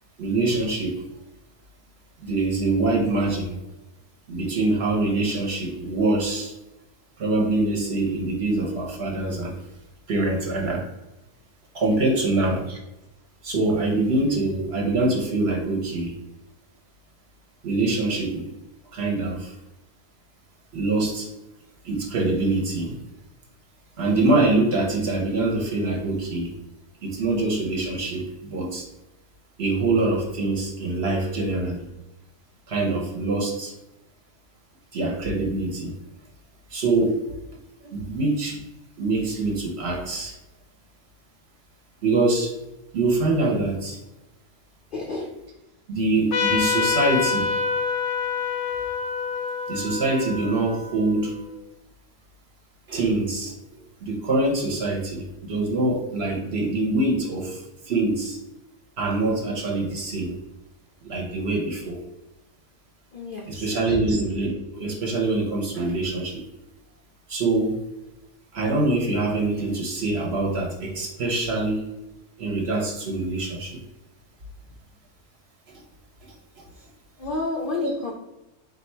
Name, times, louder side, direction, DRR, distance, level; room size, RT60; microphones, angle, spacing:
voice 1, 0.2-1.0 2.2-3.6 4.3-6.5 7.2-9.6 10.1-10.9 11.7-12.8 13.4-16.1 17.6-18.5 18.9-19.5 20.7-21.3 21.8-23.0 24.0-26.5 27.0-28.9 29.6-31.9 32.7-33.7 34.9-35.9 36.7-37.2 37.9-38.6 39.0-40.3 42.0-42.5 42.9-44.0 45.9-47.5 49.7-51.3 52.9-53.5 54.0-58.4 59.0-60.4 61.0-62.0 63.5-66.4 67.3-67.8 68.5-71.8 72.4-73.8 76.2-76.6, right 2 dB, 55° right, -1 dB, 0.9 m, -24 dB
voice 2, 44.9-45.4 63.1-64.1 74.6-74.8 76.7-76.9 77.2-78.1, left 2 dB, 70° left, 0 dB, 0.5 m, -31 dB
Trumpet, 46.3-51.4, left 5 dB, 85° left, 1.1 m, -26 dB
3.4 x 2.7 x 4.2 m, 0.98 s
omnidirectional pair, 1.5 m